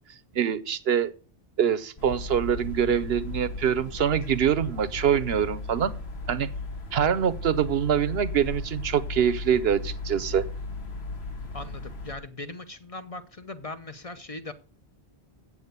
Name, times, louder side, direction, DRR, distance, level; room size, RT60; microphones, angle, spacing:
voice 1, 0.3-1.1 1.6-5.9 6.3-6.5 6.9-10.4, right 8 dB, 70° right, 16 dB, 1.0 m, -24 dB
sound 1, 2.0-12.2, left 3 dB, 75° left, 1.9 m, -36 dB
voice 2, 11.5-14.5, left 2 dB, 35° left, 9 dB, 0.8 m, -39 dB
8.0 x 7.3 x 8.0 m, 0.39 s
omnidirectional pair, 1.1 m